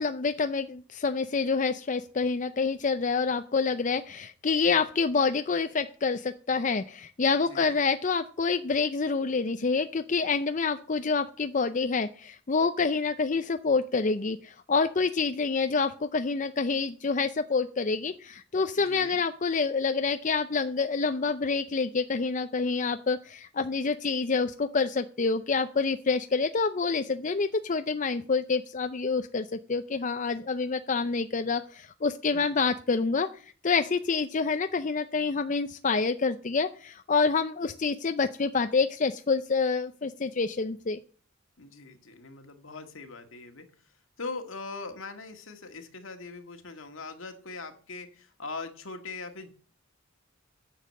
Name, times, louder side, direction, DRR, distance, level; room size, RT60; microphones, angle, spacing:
voice 1, 0.0-33.3 33.6-41.0, left 4 dB, 35° left, 8 dB, 0.5 m, -27 dB
voice 2, 7.3-7.8 18.8-19.2 32.3-32.6 41.6-43.7 44.2-49.5, left 3 dB, 70° left, 6 dB, 1.8 m, -41 dB
10.0 x 7.2 x 7.5 m, 0.42 s
head